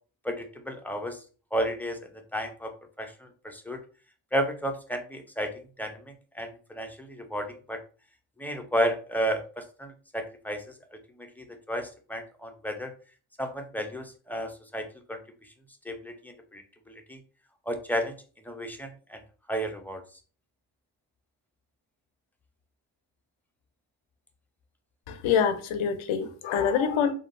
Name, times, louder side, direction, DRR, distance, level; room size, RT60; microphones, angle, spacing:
voice 1, 0.2-1.2 1.5-2.0 2.3-2.7 3.0-3.8 4.3-5.5 5.8-6.0 6.3-7.8 8.4-10.6 11.2-12.9 13.4-15.2 15.8-17.2 17.7-18.1 18.4-19.2 19.5-20.0, equal, 5° left, 0.7 m, -32 dB
voice 2, 25.1-27.1, left 7 dB, 70° left, 0.7 m, -25 dB
3.7 x 2.1 x 2.5 m
supercardioid pair, 50°, 49 cm